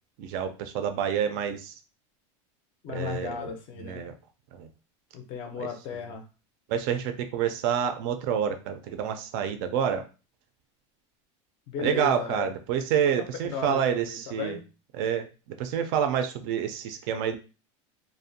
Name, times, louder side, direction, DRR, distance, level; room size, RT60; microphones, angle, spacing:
voice 1, 0.2-1.8 2.9-3.5 3.8-4.1 4.5-4.7 5.6-5.7 6.7-10.0 11.8-14.6 15.0-17.4, right 8 dB, 50° right, 8 dB, 0.4 m, -28 dB
voice 2, 2.8-4.0 5.1-6.3 11.7-12.5 13.0-13.1 13.4-14.6, left 7 dB, 35° left, 5 dB, 0.4 m, -35 dB
2.5 x 2.1 x 2.6 m, 0.32 s
supercardioid pair, 170°, 16 cm